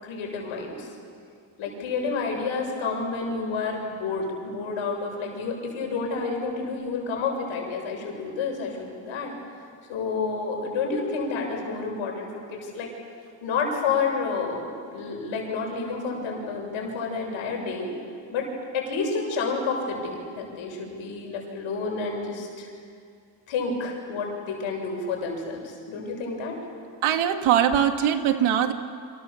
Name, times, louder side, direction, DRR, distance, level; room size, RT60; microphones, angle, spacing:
voice 1, 0.0-0.9 1.6-9.3 9.9-12.9 13.4-17.9 18.3-18.5 18.7-22.7 23.5-26.6, left 4 dB, 80° left, 1 dB, 7.3 m, -29 dB
voice 2, 27.0-28.7, right 9 dB, 85° right, 6 dB, 2.1 m, -21 dB
29.0 x 26.0 x 7.2 m, 2.3 s
cardioid pair, 140°, 47 cm